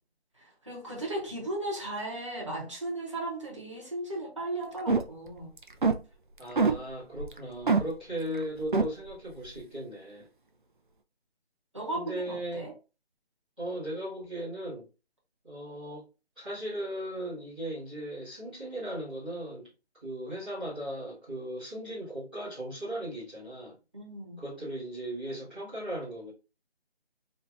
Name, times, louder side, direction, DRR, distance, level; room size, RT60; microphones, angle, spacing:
voice 1, 0.4-5.5 11.7-12.7 23.9-24.4, right 1 dB, 30° right, 1.0 m, -36 dB
sound 1, 4.8-5.3 5.6-6.0 6.6-6.8 7.2-7.4 7.7-7.9 8.3-8.4 8.7-8.9, right 4 dB, 50° right, 0.4 m, -23 dB
voice 2, 6.4-10.3 11.9-12.7 13.6-14.9 15.4-16.0 16.4-19.7 20.0-23.8 24.4-26.3, right 1 dB, 10° right, 1.7 m, -37 dB
3.2 x 2.8 x 2.5 m
figure-of-eight pair, 180°, 32 cm